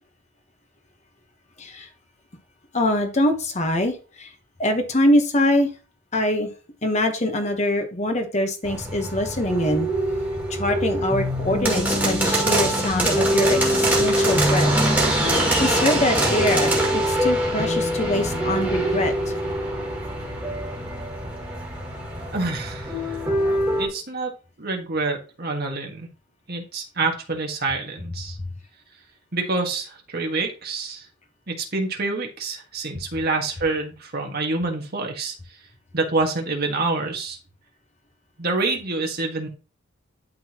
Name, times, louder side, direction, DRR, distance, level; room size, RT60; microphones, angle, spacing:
voice 1, 2.7-4.3 4.6-5.7 6.1-6.5 6.8-9.9 10.5-14.8 15.2-19.1, left 1 dB, 35° left, 6 dB, 1.1 m, -23 dB
sound 1, 8.6-23.9, right 1 dB, 10° right, 2.2 m, -23 dB
voice 2, 22.3-23.2 23.8-24.3 24.6-26.1 26.5-28.4 29.3-31.0 31.5-35.3 35.9-37.4 38.4-39.5, right 3 dB, 50° right, 2 dB, 1.7 m, -27 dB
11.5 x 3.9 x 3.0 m, 0.34 s
head